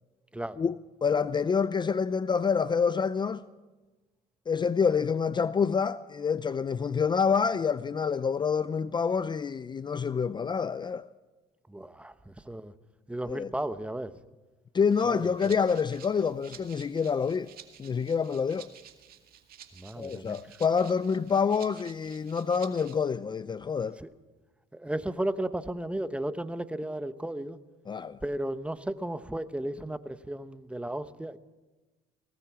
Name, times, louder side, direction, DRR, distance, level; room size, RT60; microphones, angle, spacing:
voice 1, 1.0-3.4 4.5-11.1 13.3-13.5 14.7-17.5 17.8-18.7 20.0-24.0 27.9-28.2, left 6 dB, 25° left, 0.5 m, -27 dB
voice 2, 11.7-12.7 13.1-14.1 15.1-15.3 19.8-20.4 24.0-24.1 24.7-27.6 28.2-31.4, right 1 dB, 5° right, 1.0 m, -34 dB
Rattle (instrument), 14.9-23.0, right 10 dB, 60° right, 2.2 m, -52 dB
20.0 x 18.0 x 7.4 m
cardioid pair, 110°, 17 cm